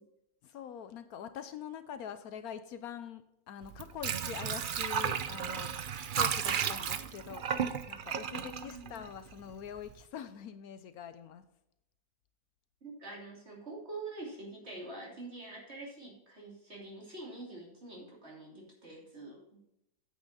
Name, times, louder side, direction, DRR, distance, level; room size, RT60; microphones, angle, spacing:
voice 1, 0.4-11.4, left 8 dB, 75° left, 11 dB, 1.1 m, -44 dB
Water / Sink (filling or washing), 3.6-9.5 9.9-10.0, right 8 dB, 75° right, 0.4 m, -34 dB
voice 2, 8.2-8.9 12.8-19.6, right 2 dB, 40° right, -3 dB, 3.3 m, -46 dB
9.3 x 8.0 x 4.1 m, 0.82 s
omnidirectional pair, 1.7 m